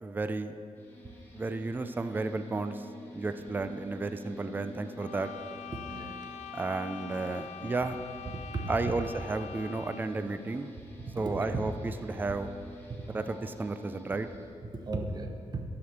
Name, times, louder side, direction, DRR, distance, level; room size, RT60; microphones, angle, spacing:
voice 1, 0.0-0.5 1.3-2.9 3.1-5.3 6.5-8.0 8.7-10.7 11.2-12.5 13.1-14.3, right 3 dB, 15° right, 9 dB, 0.4 m, -33 dB
sound 1, 0.8-14.5, equal, 15° left, 1.8 m, -50 dB
sound 2, 5.0-10.3, left 8 dB, 85° left, 0.4 m, -44 dB
voice 2, 5.7-6.2 8.3-8.9 11.0-11.6 12.9-13.0 14.6-15.6, right 3 dB, 35° right, 4 dB, 0.9 m, -36 dB
11.0 x 5.0 x 6.5 m, 2.5 s
wide cardioid pair, 145°, 12 cm